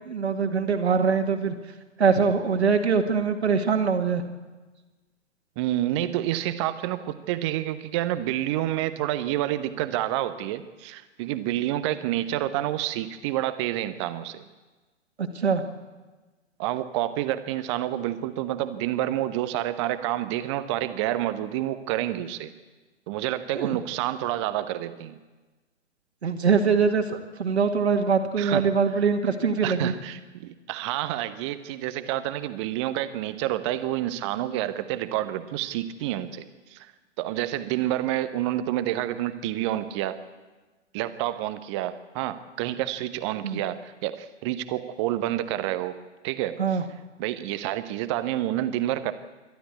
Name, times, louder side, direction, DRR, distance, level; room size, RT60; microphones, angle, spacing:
voice 1, 0.0-1.5 2.0-4.2 15.2-15.6 23.6-23.7 26.2-29.9 43.4-43.6 46.6-46.8, right 5 dB, 60° right, 6 dB, 2.0 m, -23 dB
voice 2, 5.6-14.4 16.6-22.5 23.1-25.2 28.4-28.6 29.6-36.9 37.2-40.2 40.9-46.0 46.2-46.6 47.2-49.1, right 13 dB, 25° right, 11 dB, 1.0 m, -28 dB
28.0 x 12.5 x 8.3 m, 1.3 s
figure-of-eight pair, 120°, 37 cm